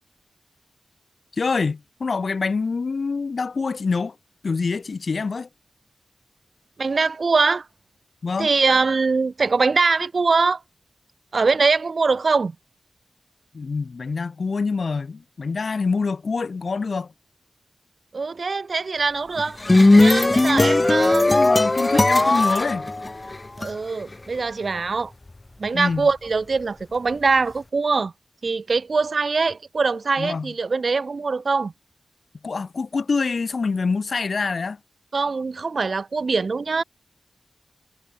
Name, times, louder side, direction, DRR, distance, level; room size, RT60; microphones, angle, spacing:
voice 1, 1.3-4.1 4.4-5.5 8.2-8.5 13.5-17.1 21.3-22.9 25.7-26.1 30.2-30.5 32.4-34.8, left 4 dB, 55° left, 2.9 m, -25 dB
voice 2, 6.8-7.7 8.4-10.6 11.3-12.5 18.1-19.6 20.0-21.3 21.9-22.0 23.6-25.1 25.6-28.1 28.4-31.7 35.1-36.8, right 4 dB, 50° right, 4.3 m, -22 dB
sound 1, 19.4-23.7, left 2 dB, 25° left, 3.5 m, -17 dB
wide cardioid pair, 110°, 0 cm